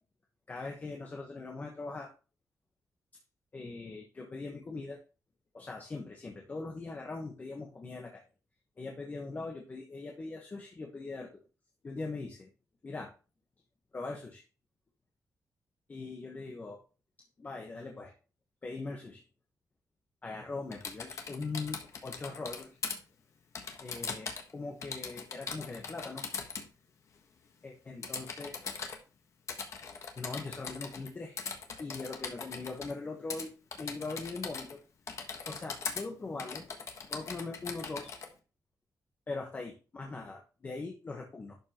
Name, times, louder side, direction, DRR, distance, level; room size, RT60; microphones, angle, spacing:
voice 1, 0.5-2.1 3.5-5.0 5.5-8.2 8.8-11.4 11.8-12.5 12.8-13.1 13.9-14.4 15.9-16.8 17.4-18.1 18.6-19.2 20.2-22.8 23.8-26.2 27.6-28.5 30.2-31.4 31.8-34.8 35.5-36.7 37.1-38.2 39.3-41.5, left 3 dB, 25° left, 0 dB, 1.2 m, -41 dB
Typing, 20.7-23.0 23.6-24.5 24.8-26.7 28.0-29.0 29.5-31.1 31.4-32.9 33.3-33.5 33.7-34.8 35.1-36.0 36.4-38.3, left 5 dB, 50° left, 1.4 m, -40 dB
11.5 x 5.5 x 3.0 m, 0.33 s
wide cardioid pair, 175°, 6 cm